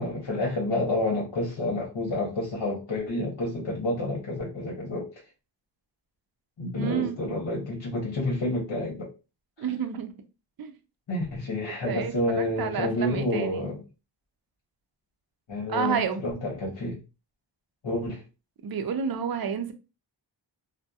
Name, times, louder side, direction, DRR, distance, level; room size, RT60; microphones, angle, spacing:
voice 1, 0.0-5.2 6.6-9.1 11.1-13.8 15.5-17.0 17.8-18.2, left 1 dB, 65° left, 1.0 m, -29 dB
voice 2, 6.7-7.4 9.6-10.1 10.6-10.7 11.7-13.7 15.7-16.2 18.6-19.7, right 7 dB, 55° right, 0.5 m, -30 dB
2.7 x 2.0 x 2.3 m
wide cardioid pair, 65°, 46 cm